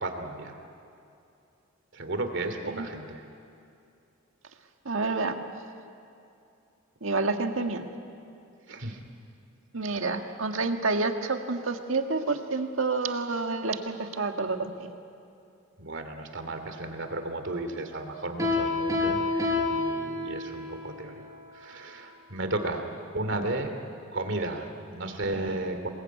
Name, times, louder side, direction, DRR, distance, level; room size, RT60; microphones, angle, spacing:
voice 1, 0.0-0.6 1.9-3.2 8.7-9.0 15.8-21.2 21.5-22.9 23.1-23.7 24.1-25.9, right 2 dB, 60° right, 6 dB, 2.7 m, -34 dB
voice 2, 4.9-5.4 7.0-7.9 9.7-15.0, right 3 dB, 80° right, 5 dB, 1.8 m, -29 dB
Piano, 18.4-20.7, left 3 dB, 15° right, 6.3 m, -27 dB
27.5 x 21.0 x 9.4 m, 2.6 s
head